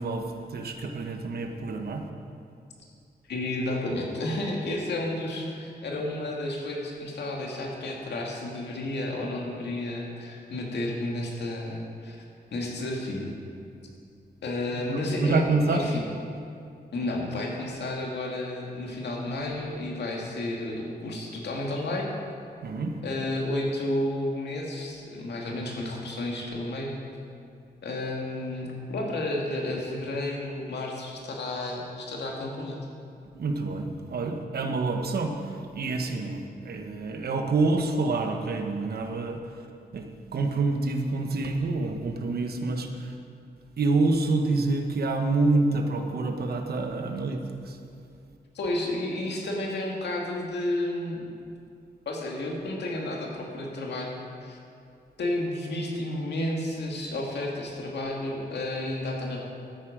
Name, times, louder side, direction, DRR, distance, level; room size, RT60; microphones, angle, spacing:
voice 1, 0.0-2.0 14.7-15.9 22.6-22.9 33.3-39.4 39.9-43.1 43.8-47.8, right 3 dB, 65° right, 4 dB, 1.2 m, -27 dB
voice 2, 3.3-12.2 12.5-13.3 14.4-16.0 16.9-22.1 23.0-26.9 27.8-32.8 48.5-51.4 52.1-54.1 54.4-54.6 55.2-59.4, left 1 dB, 85° left, -1 dB, 2.1 m, -31 dB
12.5 x 9.6 x 5.1 m, 2.5 s
wide cardioid pair, 105°, 17 cm